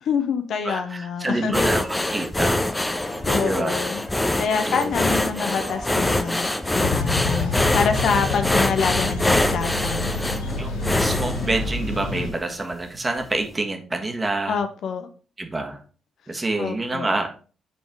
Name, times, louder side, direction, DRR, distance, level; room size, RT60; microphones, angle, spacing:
voice 1, 0.1-1.5 3.3-4.0 4.4-10.1 14.5-15.1 16.6-17.1, left 6 dB, 60° left, 8 dB, 0.7 m, -26 dB
voice 2, 0.6-2.6 3.4-3.9 4.6-5.0 10.6-10.7 11.0-14.6 15.4-15.8 16.3-17.3, right 2 dB, 25° right, 4 dB, 1.4 m, -27 dB
sound 1, 1.5-12.1 12.6-12.8 13.2-13.3, left 1 dB, 15° left, 0.7 m, -24 dB
sound 2, 2.9-11.8, left 1 dB, 30° left, 2.5 m, -39 dB
sound 3, 6.8-12.3, left 3 dB, 80° left, 1.0 m, -27 dB
5.9 x 4.1 x 4.7 m, 0.39 s
hypercardioid pair, 45°, 0 cm